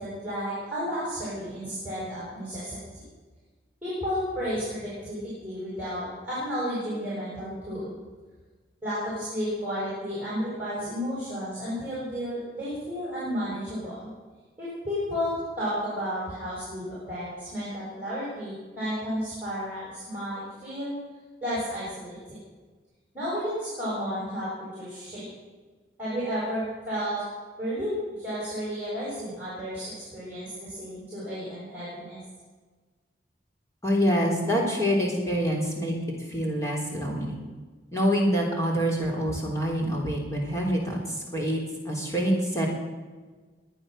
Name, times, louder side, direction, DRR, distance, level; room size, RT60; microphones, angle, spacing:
voice 1, 0.0-2.8 3.8-8.0 8.8-14.1 14.6-21.0 21.4-22.4 23.1-25.3 26.0-27.2 27.6-32.2, equal, 10° right, -8 dB, 6.9 m, -32 dB
voice 2, 33.8-36.0 36.3-37.3 37.9-41.6 41.9-42.7, equal, 15° left, -1 dB, 3.7 m, -26 dB
23.0 x 9.1 x 6.6 m, 1.4 s
head